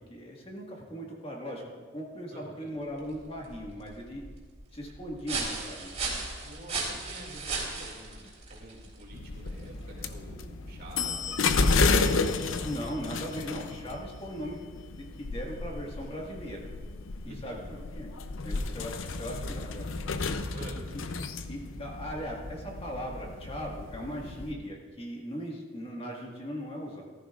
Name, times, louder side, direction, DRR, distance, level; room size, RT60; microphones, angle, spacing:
voice 1, 0.1-1.6 1.9-4.2 4.7-6.0 12.6-14.6 15.2-16.7 17.2-17.6 17.9-18.1 18.4-19.9 21.5-27.0, equal, 30° left, -1 dB, 1.7 m, -38 dB
voice 2, 2.3-2.7 6.4-12.6 17.2-17.8 19.1-19.2 20.5-20.8, right 1 dB, 55° right, -1 dB, 2.4 m, -48 dB
sound 1, 2.8-10.3, right 3 dB, 35° right, 3.3 m, -37 dB
sound 2, 9.1-24.5, left 3 dB, 90° left, 0.6 m, -32 dB
14.5 x 14.0 x 2.5 m, 1.5 s
head